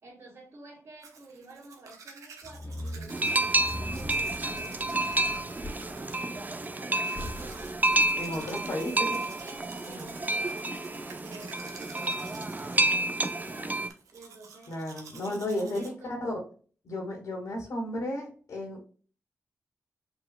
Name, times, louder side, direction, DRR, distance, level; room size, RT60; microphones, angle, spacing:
voice 1, 0.0-14.8 15.2-15.4 15.7-16.3 17.8-18.2, right 2 dB, 60° right, -7 dB, 2.4 m, -50 dB
Domestic sounds home sounds, 1.0-15.9, right 5 dB, 90° right, 0.9 m, -51 dB
sound 1, 2.4-13.6, left 1 dB, 30° left, 1.7 m, -44 dB
sound 2, 3.1-13.9, right 2 dB, 30° right, 0.7 m, -30 dB
voice 2, 8.2-8.9 9.9-10.1 14.7-16.3 16.8-18.8, left 1 dB, 75° left, 0 dB, 1.9 m, -33 dB
5.5 x 4.3 x 2.2 m, 0.40 s
cardioid pair, 45°, 5 cm